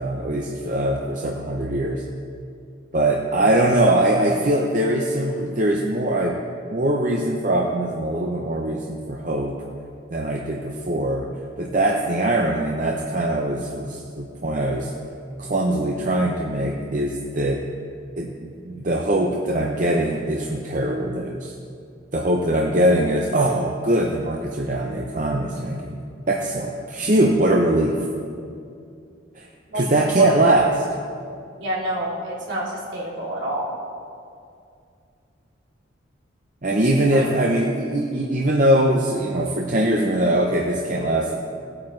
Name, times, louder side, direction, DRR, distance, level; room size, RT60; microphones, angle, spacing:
voice 1, 0.0-2.0 2.9-6.4 6.7-9.6 10.1-11.3 11.6-14.9 15.4-17.6 18.2-21.5 22.1-26.0 26.3-28.0 29.3-29.5 29.7-30.8 36.6-41.3, right 1 dB, 40° right, 0 dB, 0.6 m, -22 dB
voice 2, 29.7-30.5 31.6-33.7 37.1-37.2, equal, 65° right, -6 dB, 2.8 m, -28 dB
17.0 x 8.7 x 3.2 m, 2.4 s
head